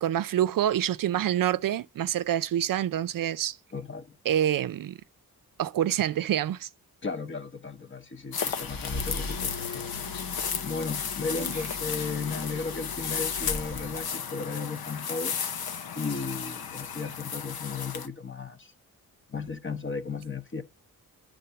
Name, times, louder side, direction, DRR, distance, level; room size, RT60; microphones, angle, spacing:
voice 1, 0.0-3.6 4.3-5.0 5.6-6.7, right 11 dB, 65° right, 0.5 m, -26 dB
voice 2, 3.7-4.2 7.0-10.1 10.3-15.4 15.9-18.7 19.3-20.6, left 4 dB, 35° left, 0.9 m, -35 dB
sound 1, 8.3-18.1, left 7 dB, 85° left, 0.9 m, -34 dB
sound 2, 8.4-14.4, left 3 dB, 65° left, 1.4 m, -39 dB
10.0 x 3.8 x 6.8 m
wide cardioid pair, 120°, 36 cm